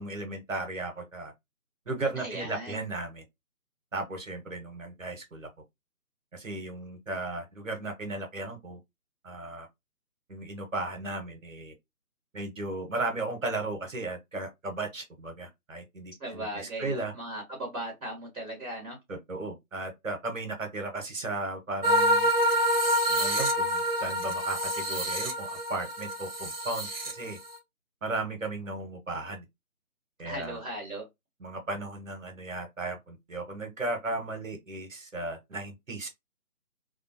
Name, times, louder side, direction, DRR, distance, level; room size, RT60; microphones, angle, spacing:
voice 1, 0.0-1.3 1.9-3.2 3.9-5.5 6.3-8.8 9.2-9.7 10.3-11.7 12.3-17.1 19.1-22.3 23.1-27.4 28.0-29.4 30.2-30.6 31.4-36.1, right 2 dB, 60° right, 1.0 m, -35 dB
voice 2, 2.1-2.8 16.2-19.0 30.2-31.1, right 1 dB, 5° right, 0.9 m, -38 dB
sound 1, 21.8-27.6, equal, 45° right, 0.5 m, -27 dB
2.6 x 2.1 x 2.6 m
figure-of-eight pair, 150°, 43 cm